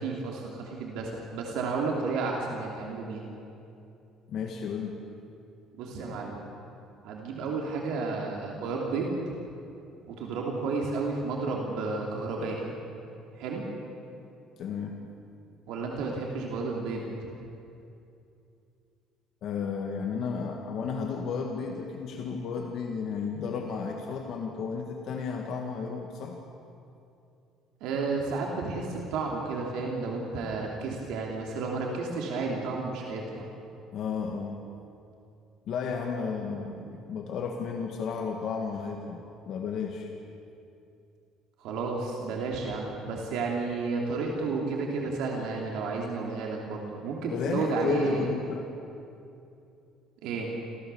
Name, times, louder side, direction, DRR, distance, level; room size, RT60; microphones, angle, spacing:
voice 1, 0.0-3.3 5.8-6.4 7.0-9.2 10.1-12.7 13.3-13.7 15.7-17.3 27.8-33.5 41.6-48.3 50.2-50.5, right 4 dB, 70° right, -1 dB, 3.0 m, -32 dB
voice 2, 4.3-5.0 14.6-15.0 19.4-26.4 33.9-34.6 35.7-40.1 47.3-48.7, left 5 dB, 45° left, 2 dB, 1.7 m, -33 dB
27.0 x 15.5 x 7.0 m, 2.7 s
cardioid pair, 175°, 0 cm